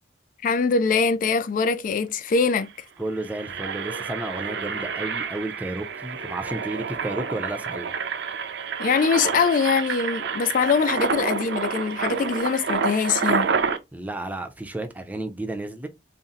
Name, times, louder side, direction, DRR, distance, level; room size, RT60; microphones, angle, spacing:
voice 1, 0.4-2.7 8.8-13.5, left 5 dB, 45° left, 0.3 m, -23 dB
Engine, 2.0-2.1 2.4-2.6 3.1-13.8, right 5 dB, 65° right, 0.5 m, -29 dB
voice 2, 3.0-7.9 13.9-15.9, right 2 dB, 10° right, 0.5 m, -32 dB
4.1 x 2.0 x 3.8 m
head